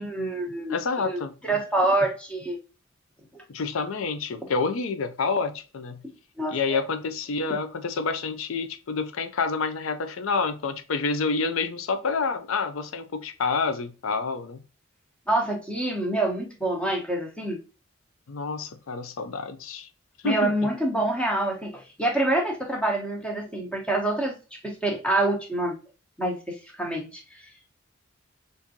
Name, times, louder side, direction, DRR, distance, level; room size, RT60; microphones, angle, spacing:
voice 1, 0.0-2.6 3.3-3.4 6.4-6.8 15.3-17.6 20.2-25.8 26.2-27.2, right 2 dB, 5° left, 0 dB, 0.9 m, -26 dB
voice 2, 0.7-1.3 3.5-6.0 6.5-14.6 18.3-19.9 20.2-20.7, left 4 dB, 80° left, 10 dB, 0.5 m, -28 dB
3.6 x 2.6 x 2.7 m, 0.34 s
head